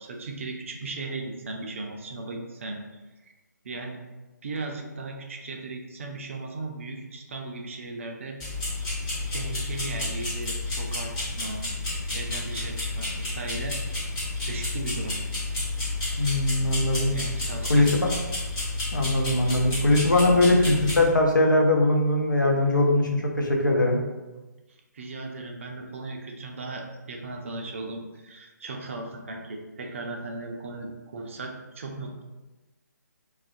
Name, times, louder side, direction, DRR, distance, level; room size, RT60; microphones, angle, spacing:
voice 1, 0.0-2.8 3.6-4.0 4.4-8.4 9.3-11.6 12.1-13.8 14.4-15.2 17.1-18.1 24.7-32.2, right 3 dB, 45° right, 1 dB, 0.4 m, -37 dB
sound 1, 8.4-21.1, left 2 dB, 20° left, 0.9 m, -31 dB
voice 2, 16.2-17.1 17.7-18.1 18.9-24.0, left 2 dB, 85° left, 1 dB, 0.5 m, -21 dB
2.3 x 2.1 x 2.5 m, 1.1 s
figure-of-eight pair, 140°, 10 cm